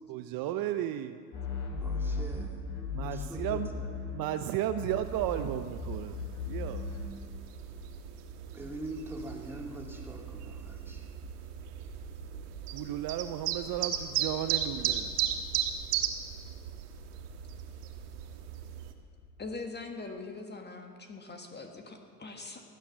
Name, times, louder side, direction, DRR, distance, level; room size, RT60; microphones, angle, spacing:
voice 1, 0.1-1.2 2.9-3.7 4.1-6.9 12.7-15.2, right 12 dB, 50° right, 10 dB, 0.7 m, -34 dB
sound 1, 1.3-4.4 4.7-7.2, left 4 dB, 60° left, 3.7 m, -36 dB
voice 2, 1.8-2.6 3.0-3.9 8.5-11.0, right 2 dB, 5° right, 0 dB, 2.4 m, -43 dB
sound 2, 5.0-18.9, right 9 dB, 80° right, 1.4 m, -37 dB
voice 3, 19.4-22.6, left 3 dB, 20° left, 4 dB, 1.5 m, -42 dB
15.5 x 9.3 x 7.3 m, 2.4 s
supercardioid pair, 100°, 46 cm